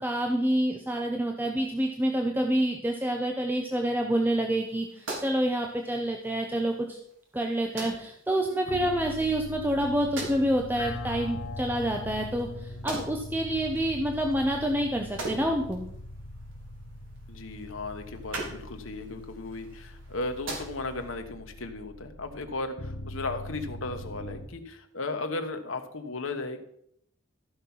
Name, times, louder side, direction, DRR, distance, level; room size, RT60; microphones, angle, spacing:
voice 1, 0.0-7.0 7.3-15.9, right 1 dB, 10° right, 3 dB, 0.8 m, -28 dB
sound 1, 4.5-21.2, right 2 dB, 70° right, 3.7 m, -43 dB
sound 2, 8.7-24.5, left 1 dB, 55° left, 0.8 m, -41 dB
voice 2, 17.3-26.6, left 2 dB, 80° left, 6 dB, 1.3 m, -36 dB
14.0 x 5.9 x 5.6 m, 0.72 s
head